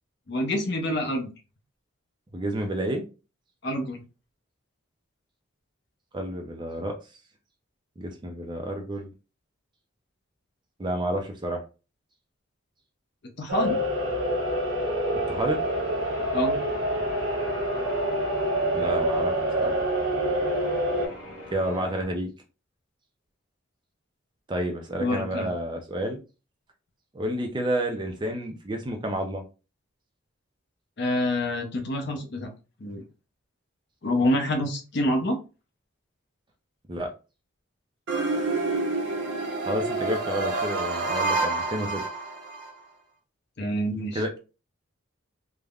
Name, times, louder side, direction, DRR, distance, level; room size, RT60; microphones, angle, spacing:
voice 1, 0.3-1.3 3.6-4.0 13.4-13.8 16.3-16.6 25.0-25.5 31.0-32.5 32.8-33.0 34.0-35.4 43.6-44.2, left 1 dB, 55° left, 4 dB, 0.6 m, -27 dB
voice 2, 2.3-3.0 6.1-6.9 8.0-9.1 10.8-11.6 15.3-15.6 18.7-19.7 21.5-22.3 24.5-26.2 27.1-29.4 36.9-37.1 39.6-42.0 44.1-44.4, right 1 dB, 20° right, 4 dB, 0.4 m, -30 dB
sound 1, 13.5-21.1, right 1 dB, 90° right, 0.9 m, -26 dB
Church bell, 14.7-22.0, equal, 70° left, 1.3 m, -43 dB
sound 2, 38.1-42.7, right 3 dB, 60° right, 0.7 m, -28 dB
3.3 x 2.1 x 2.3 m, 0.32 s
head